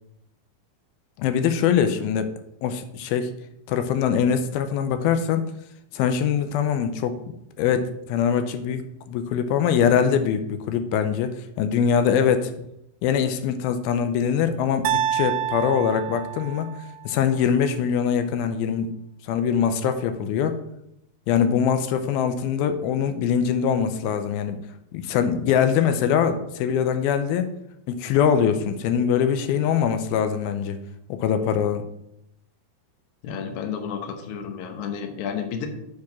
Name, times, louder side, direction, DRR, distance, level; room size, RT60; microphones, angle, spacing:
voice 1, 1.2-2.3 2.6-3.3 3.7-5.4 5.9-7.2 7.6-12.6 13.0-16.7 17.1-18.9 19.3-20.5 21.3-24.6 24.9-27.5 27.9-30.8 31.1-31.8, left 7 dB, 85° left, 9 dB, 2.5 m, -23 dB
sound 1, 14.9-17.0, right 10 dB, 85° right, 2.4 m, -27 dB
voice 2, 33.2-35.7, left 7 dB, 70° left, 5 dB, 1.9 m, -31 dB
7.1 x 4.8 x 5.9 m, 0.80 s
omnidirectional pair, 4.4 m